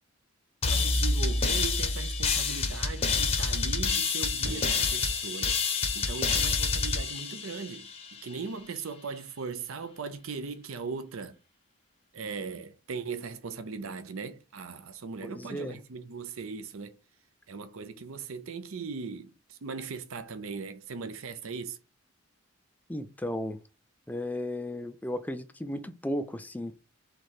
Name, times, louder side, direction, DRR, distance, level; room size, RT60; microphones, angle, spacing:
sound 1, 0.6-8.1, left 4 dB, 25° left, 0.7 m, -28 dB
voice 1, 0.7-5.6 5.9-7.9 8.2-11.4 12.1-17.0 17.5-21.8, right 5 dB, 65° right, 0.6 m, -39 dB
sound 2, 4.4-7.6, right 2 dB, 45° right, 1.1 m, -49 dB
voice 2, 15.4-15.8 22.9-23.6 24.1-26.7, left 1 dB, 5° left, 0.3 m, -34 dB
3.7 x 3.3 x 4.3 m
head